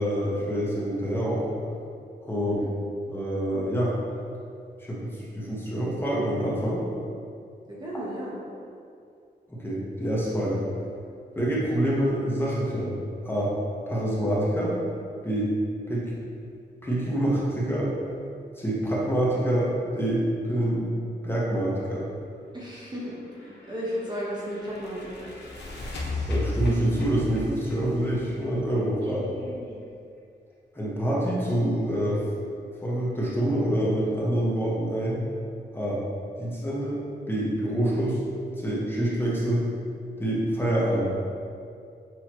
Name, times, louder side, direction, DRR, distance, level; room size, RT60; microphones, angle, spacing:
voice 1, 0.0-1.5 2.2-2.6 3.1-3.9 4.9-6.8 9.5-10.6 11.4-13.0 13.2-13.5 13.9-14.7 15.2-15.5 15.9-16.1 16.8-17.9 18.6-20.9 21.2-22.1 26.3-29.2 30.7-32.2 32.8-35.2 35.7-36.0 36.4-38.2 38.6-39.7 40.2-41.0, right 1 dB, 10° left, -7 dB, 0.8 m, -26 dB
voice 2, 2.3-2.7 7.7-8.3 22.5-25.3 29.0-29.8, equal, 25° right, -6 dB, 0.7 m, -35 dB
sound 1, 23.4-29.1, left 1 dB, 85° left, 0.8 m, -34 dB
6.1 x 2.7 x 2.9 m, 2.4 s
wide cardioid pair, 145°, 18 cm